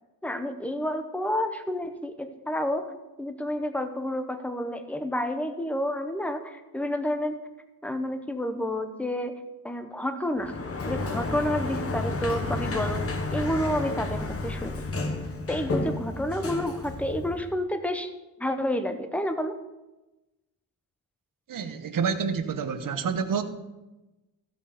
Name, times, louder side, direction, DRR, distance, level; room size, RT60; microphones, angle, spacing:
voice 1, 0.2-2.9 3.2-7.4 7.8-9.4 9.6-10.6 10.8-14.8 15.5-18.1 18.4-19.6, left 1 dB, 5° left, 8 dB, 0.7 m, -30 dB
Sliding door, 10.4-17.5, left 2 dB, 35° left, 1.1 m, -31 dB
voice 2, 21.5-23.4, right 6 dB, 55° right, 8 dB, 1.0 m, -28 dB
15.0 x 5.7 x 5.0 m, 1.0 s
wide cardioid pair, 155°, 38 cm